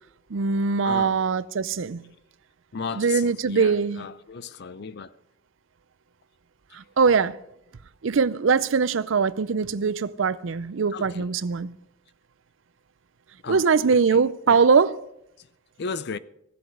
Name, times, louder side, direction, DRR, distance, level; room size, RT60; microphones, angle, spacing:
voice 1, 0.3-2.1 3.0-4.0 6.7-7.4 8.0-11.7 13.5-15.0, right 5 dB, 65° right, 0.5 m, -22 dB
voice 2, 0.8-1.2 2.7-5.2 10.9-11.3 13.4-14.6 15.4-15.5 15.8-16.2, left 5 dB, 55° left, 0.5 m, -35 dB
16.0 x 7.8 x 6.4 m
head